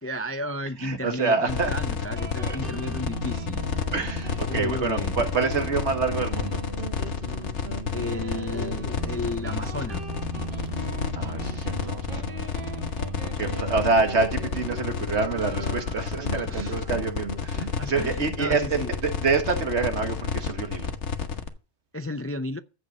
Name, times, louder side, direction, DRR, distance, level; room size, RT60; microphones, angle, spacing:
voice 1, 0.0-3.6 4.4-5.2 7.9-10.0 16.4-16.8 17.6-18.9 21.9-22.6, left 1 dB, 20° left, 0.3 m, -33 dB
voice 2, 0.8-1.7 2.4-2.6 3.9-6.6 11.2-12.4 13.2-20.9, right 4 dB, 75° right, 1.8 m, -27 dB
sound 1, 1.5-21.5, left 6 dB, 90° left, 1.4 m, -30 dB
Guitar, 2.2-19.4, right 2 dB, 50° right, 1.7 m, -37 dB
sound 2, 15.3-17.8, right 11 dB, 25° right, 2.5 m, -49 dB
15.0 x 5.2 x 6.6 m
omnidirectional pair, 1.2 m